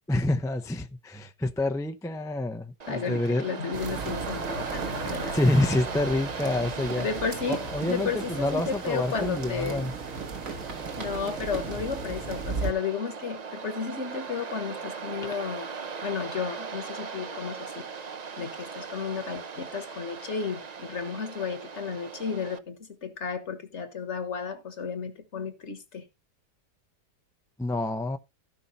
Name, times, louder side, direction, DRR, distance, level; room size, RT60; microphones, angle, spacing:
voice 1, 0.1-3.6 4.7-7.1 7.5-9.9 27.6-28.2, left 2 dB, 5° left, 0.4 m, -28 dB
Waves surf, 2.8-22.6, right 5 dB, 40° right, 0.6 m, -39 dB
voice 2, 2.9-5.4 7.0-7.6 7.9-9.9 10.9-15.7 16.0-17.9 18.4-26.0, left 6 dB, 50° left, 1.6 m, -33 dB
sound 1, 3.7-12.7, right 4 dB, 60° right, 1.8 m, -36 dB
15.0 x 5.6 x 4.2 m
omnidirectional pair, 1.7 m